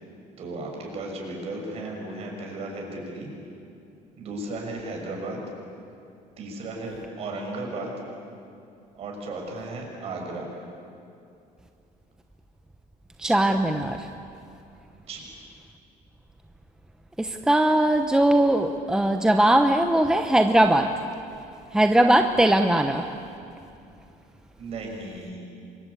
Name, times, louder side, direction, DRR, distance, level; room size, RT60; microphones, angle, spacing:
voice 1, 0.4-3.3 4.2-5.4 6.4-7.9 8.9-10.5 14.9-15.2 24.6-25.5, right 2 dB, 45° right, 0 dB, 6.2 m, -35 dB
voice 2, 13.2-14.1 17.2-20.9 21.7-23.1, right 1 dB, 5° right, 6 dB, 0.9 m, -20 dB
29.0 x 24.0 x 8.5 m, 2.6 s
cardioid pair, 160°, 14 cm